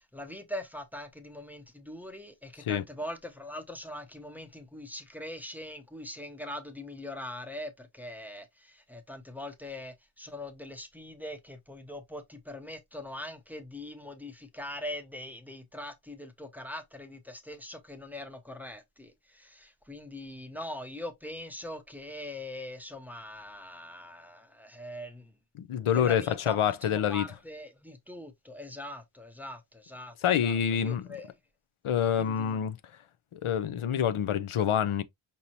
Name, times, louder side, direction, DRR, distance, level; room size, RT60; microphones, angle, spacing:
voice 1, 0.0-25.3 25.9-30.1 30.4-31.3 32.1-32.6, left 1 dB, 5° right, 0.6 m, -42 dB
voice 2, 25.5-27.3 30.2-31.1 31.8-32.8 33.3-35.0, left 9 dB, 90° left, 0.6 m, -27 dB
5.3 x 2.9 x 2.8 m
wide cardioid pair, 100°, 48 cm